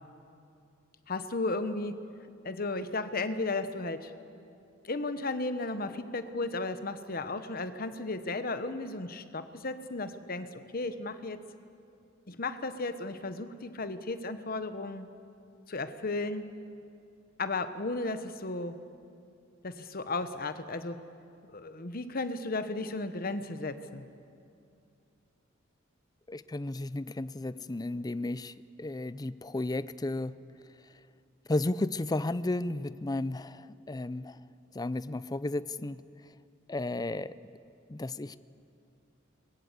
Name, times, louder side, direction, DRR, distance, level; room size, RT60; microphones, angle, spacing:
voice 1, 1.1-2.1 2.4-4.1 4.8-11.4 12.3-15.1 15.7-16.5 17.4-18.8 19.6-21.0 21.5-24.0, left 3 dB, 50° left, 10 dB, 1.1 m, -34 dB
voice 2, 26.3-30.4 31.5-34.4 34.7-36.0 36.7-37.3 37.9-38.4, left 2 dB, 20° left, 16 dB, 0.5 m, -33 dB
23.0 x 21.0 x 8.2 m, 2.5 s
head